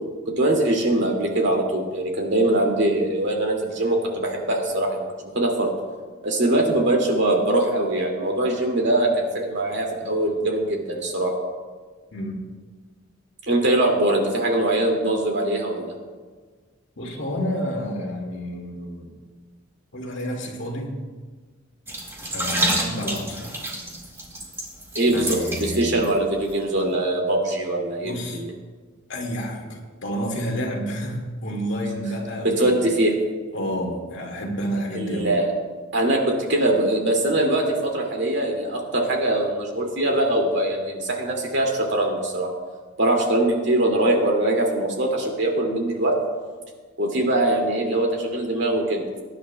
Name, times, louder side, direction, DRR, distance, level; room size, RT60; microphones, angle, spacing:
voice 1, 0.4-5.7 6.2-11.3 13.5-15.9 25.0-28.5 32.4-33.1 34.9-35.5 35.9-42.5 43.0-46.2 47.0-49.2, right 1 dB, 60° right, 1 dB, 2.2 m, -22 dB
voice 2, 12.1-12.4 17.0-19.1 19.9-20.9 22.3-23.7 25.1-26.0 28.0-28.4 29.1-32.9 33.5-35.4, equal, 65° left, 0 dB, 2.0 m, -30 dB
sound 1, 21.9-26.1 26.4-26.5, right 1 dB, 15° right, 1.7 m, -28 dB
22.5 x 10.5 x 2.2 m, 1.4 s
head